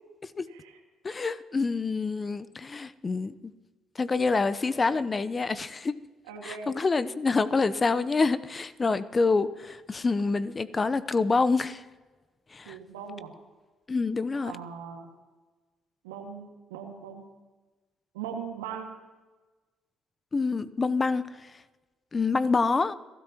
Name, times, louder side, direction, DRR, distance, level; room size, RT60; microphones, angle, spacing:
voice 1, 1.0-3.5 4.0-6.0 6.4-11.8 12.5-12.8 13.9-14.6 20.3-21.2 22.1-23.0, left 4 dB, 35° left, 15 dB, 0.8 m, -26 dB
voice 2, 6.3-6.7 12.7-13.3 14.4-15.1 16.0-17.3 18.1-19.0, right 7 dB, 85° right, 3 dB, 1.9 m, -39 dB
28.5 x 13.0 x 3.0 m, 1.3 s
hypercardioid pair, 50°, 0 cm